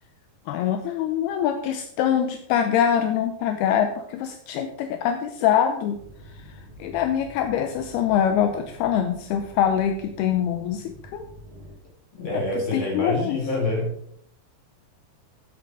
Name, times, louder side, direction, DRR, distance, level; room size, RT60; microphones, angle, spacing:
voice 1, 0.5-6.0 6.8-11.2 12.7-13.4, left 9 dB, 80° left, 6 dB, 2.4 m, -24 dB
sound 1, 5.9-11.7, equal, 25° right, 5.9 m, -46 dB
voice 2, 12.2-13.9, left 2 dB, 30° left, -2 dB, 4.9 m, -26 dB
14.5 x 7.9 x 4.8 m, 0.68 s
omnidirectional pair, 5.4 m